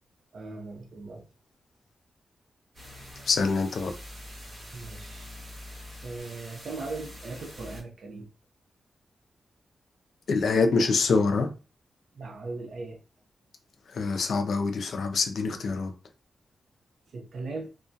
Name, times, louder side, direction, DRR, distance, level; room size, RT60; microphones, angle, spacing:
voice 1, 0.3-1.2 4.7-5.3 6.0-8.3 12.1-13.0 17.1-17.7, right 3 dB, 60° right, 0.6 m, -38 dB
sound 1, 2.7-7.8, left 1 dB, 40° right, 1.1 m, -44 dB
voice 2, 3.3-3.9 10.3-11.5 13.9-15.9, left 4 dB, 65° left, 0.4 m, -25 dB
2.2 x 2.2 x 2.6 m
wide cardioid pair, 145°, 0 cm